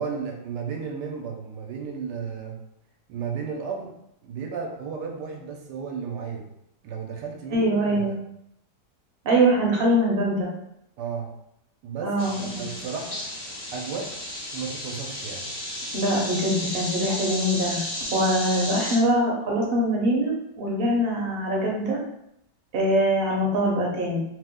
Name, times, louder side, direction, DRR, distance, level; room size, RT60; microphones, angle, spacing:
voice 1, 0.0-2.6 3.1-3.9 4.2-6.5 6.8-8.2 11.0-11.3 11.8-13.2 13.7-14.1 14.5-15.5, right 6 dB, 85° right, 2 dB, 1.2 m, -33 dB
voice 2, 7.5-8.1 9.2-10.5 12.0-12.5 15.9-17.8 18.1-22.0 22.7-24.2, right 1 dB, 50° right, -2 dB, 0.7 m, -23 dB
sound 1, 12.2-19.0, left 1 dB, 20° left, 0.7 m, -33 dB
3.0 x 2.1 x 3.6 m, 0.78 s
omnidirectional pair, 1.8 m